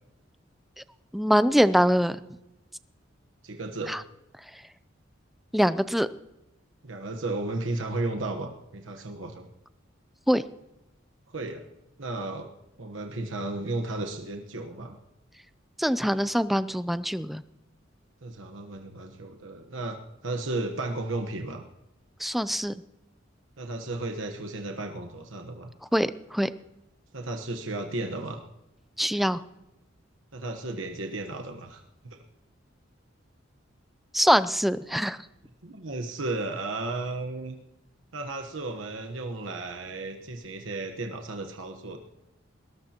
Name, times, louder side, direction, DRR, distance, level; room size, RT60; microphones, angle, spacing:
voice 1, 1.1-2.2 3.9-4.0 5.5-6.1 10.3-10.4 15.8-17.4 22.2-22.8 25.9-26.5 29.0-29.4 34.1-35.2, equal, ahead, 13 dB, 0.5 m, -23 dB
voice 2, 3.4-4.0 6.8-9.5 11.3-11.7 12.0-12.5 12.8-15.0 18.2-20.0 20.2-21.6 23.6-25.7 27.1-28.4 30.3-32.2 35.6-37.6 38.1-42.0, right 2 dB, 80° right, 4 dB, 1.2 m, -34 dB
21.0 x 19.5 x 3.0 m, 0.91 s
head